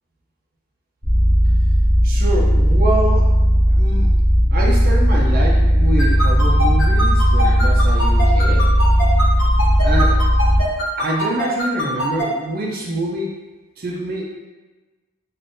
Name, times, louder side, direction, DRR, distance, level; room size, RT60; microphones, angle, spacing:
sound 1, 1.0-10.6, equal, 10° left, 0.8 m, -15 dB
voice 1, 2.0-3.3 3.7-4.1 4.5-8.6 9.8-10.2 11.0-13.3 13.8-14.2, right 1 dB, 45° right, -2 dB, 0.4 m, -25 dB
sound 2, 6.0-12.2, right 1 dB, 80° left, 1.0 m, -23 dB
2.5 x 2.4 x 3.4 m, 1.2 s
head